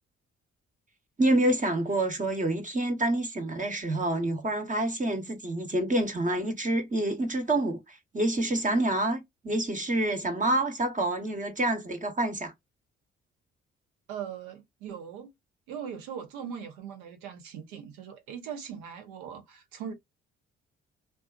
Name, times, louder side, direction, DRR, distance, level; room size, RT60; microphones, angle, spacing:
voice 1, 1.2-12.5, right 1 dB, 25° right, 1.0 m, -27 dB
voice 2, 14.1-15.3 15.7-19.9, right 8 dB, 85° right, 0.8 m, -40 dB
2.4 x 2.4 x 2.3 m
hypercardioid pair, 50°, 29 cm